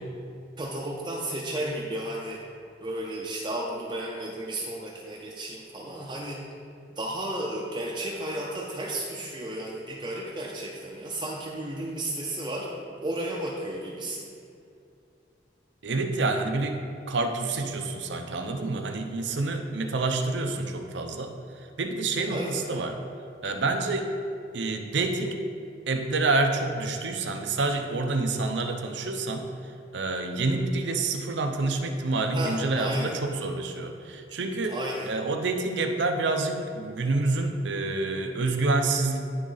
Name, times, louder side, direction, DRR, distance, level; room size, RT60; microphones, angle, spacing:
voice 1, 0.6-2.4 2.8-6.5 6.9-12.7 13.0-14.3 22.3-22.7 32.3-33.2 34.7-35.1, right 1 dB, 25° right, -3 dB, 0.5 m, -33 dB
voice 2, 15.8-16.8 17.1-21.3 21.8-23.0 23.4-24.2 24.5-25.4 25.9-29.5 29.9-34.8 35.1-39.2, right 3 dB, 90° right, 5 dB, 0.7 m, -28 dB
11.0 x 3.7 x 3.9 m, 2.4 s
head